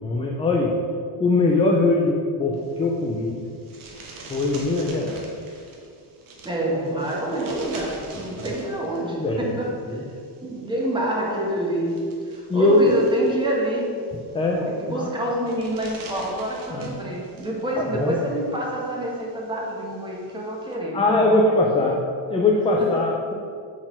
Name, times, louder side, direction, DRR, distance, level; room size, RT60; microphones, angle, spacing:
voice 1, 0.0-0.7 1.2-3.4 4.3-5.3 8.4-8.5 9.1-9.5 9.8-10.0 12.5-12.9 14.3-15.1 16.7-17.0 17.8-18.2 20.9-22.0 22.3-23.3, left 2 dB, 15° left, -1 dB, 0.3 m, -21 dB
sound 1, 2.5-20.7, right 3 dB, 45° right, 1.2 m, -45 dB
voice 2, 6.4-10.0 10.4-12.0 12.3-13.9 14.6-21.4, right 1 dB, 10° right, -2 dB, 1.1 m, -27 dB
6.5 x 4.0 x 5.8 m, 2.2 s
cardioid pair, 160°, 45 cm